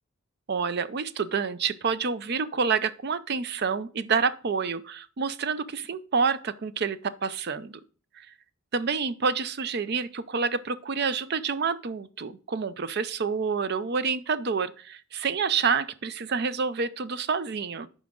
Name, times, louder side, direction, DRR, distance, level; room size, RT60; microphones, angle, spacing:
voice 1, 0.5-7.8 8.2-8.3 8.7-17.9, right 5 dB, 50° right, 0.5 m, -28 dB
9.4 x 5.1 x 3.7 m
head